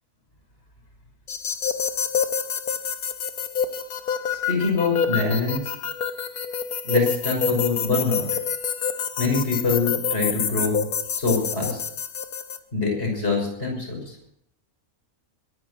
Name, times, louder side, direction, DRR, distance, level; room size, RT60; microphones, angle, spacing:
sound 1, 1.3-12.6, left 7 dB, 85° left, 1.6 m, -27 dB
voice 1, 4.3-5.7 6.8-8.2 8.8-8.9 9.2-10.9 11.1-11.8 12.7-14.2, left 4 dB, 45° left, 0 dB, 6.3 m, -24 dB
22.0 x 10.0 x 6.3 m, 0.73 s
omnidirectional pair, 1.5 m